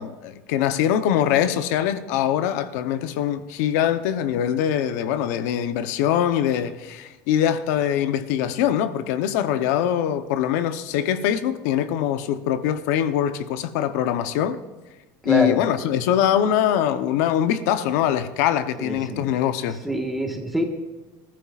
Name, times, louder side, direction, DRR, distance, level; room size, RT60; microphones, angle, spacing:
voice 1, 0.0-14.6 15.2-19.8, left 10 dB, 70° left, 0.8 m, -23 dB
voice 2, 15.2-15.6 18.8-19.3 19.8-20.6, equal, ahead, 1.4 m, -25 dB
26.5 x 14.0 x 2.4 m
cardioid pair, 175°, 9 cm